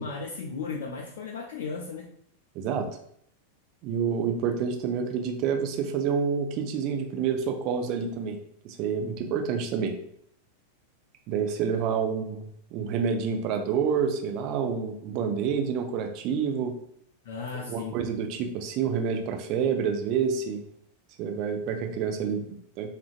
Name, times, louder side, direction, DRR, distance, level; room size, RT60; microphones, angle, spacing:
voice 1, 0.0-2.1 17.2-18.0, left 4 dB, 55° left, -2 dB, 0.4 m, -35 dB
voice 2, 2.6-2.9 3.8-8.4 8.6-9.9 11.3-12.4 12.7-16.7 17.5-20.6 21.2-22.9, right 6 dB, 40° right, 4 dB, 0.4 m, -28 dB
2.5 x 2.2 x 2.3 m, 0.68 s
figure-of-eight pair, 90°, 0 cm